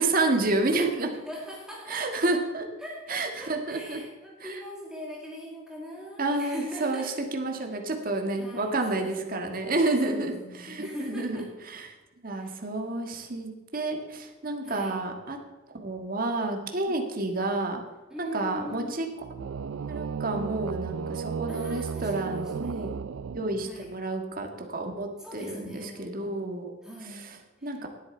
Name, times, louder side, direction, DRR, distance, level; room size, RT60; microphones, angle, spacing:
voice 1, 0.0-1.1 1.9-2.6 3.1-4.0 4.4-4.6 6.2-11.9 12.2-15.4 15.7-17.8 18.2-19.0 19.9-22.9 23.3-26.7 27.0-27.4 27.6-27.9, right 2 dB, 45° right, 3 dB, 1.7 m, -30 dB
voice 2, 1.3-2.2 2.8-7.2 8.4-9.5 10.0-11.5 12.3-12.6 14.6-15.0 18.1-19.0 21.5-22.9 23.6-24.0 25.2-26.1 26.8-27.8, left 1 dB, 5° right, -4 dB, 2.1 m, -41 dB
sound 1, 19.2-23.9, right 6 dB, 85° right, 0.4 m, -34 dB
17.5 x 8.5 x 4.4 m, 1.2 s
head